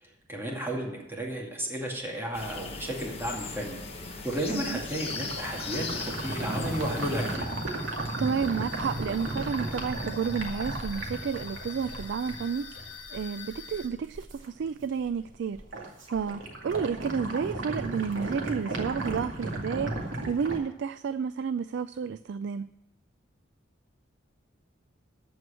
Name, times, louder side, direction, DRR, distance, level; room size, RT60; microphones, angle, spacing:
voice 1, 0.0-7.5, equal, 10° right, -2 dB, 2.4 m, -34 dB
sound 1, 2.3-7.4, left 4 dB, 30° left, 1.3 m, -38 dB
sound 2, 4.1-14.5 14.8-15.3 15.5-20.6, right 2 dB, 80° right, 2.2 m, -35 dB
voice 2, 4.5-4.8 8.2-15.6 16.1-22.7, right 6 dB, 65° right, 13 dB, 0.3 m, -31 dB
sound 3, 5.5-13.9, left 7 dB, 65° left, 2.6 m, -45 dB
14.0 x 4.6 x 8.7 m, 0.90 s
head